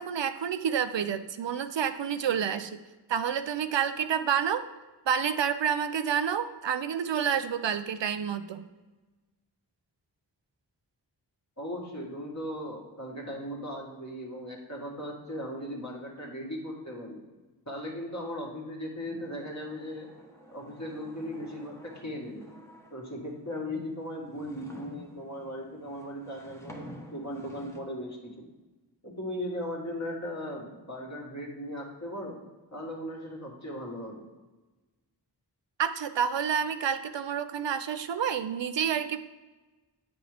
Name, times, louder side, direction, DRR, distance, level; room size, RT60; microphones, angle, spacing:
voice 1, 0.0-2.8 3.1-4.7 5.1-8.6 35.8-39.2, right 8 dB, 80° right, 11 dB, 0.5 m, -29 dB
voice 2, 11.6-17.2 17.7-20.1 20.5-22.4 22.9-28.5 29.0-32.4 32.7-34.2, equal, 40° left, -2 dB, 2.0 m, -38 dB
sound 1, 19.0-23.3 23.9-27.8, equal, 5° left, 1.0 m, -50 dB
8.7 x 5.2 x 3.4 m, 1.2 s
wide cardioid pair, 55°, 43 cm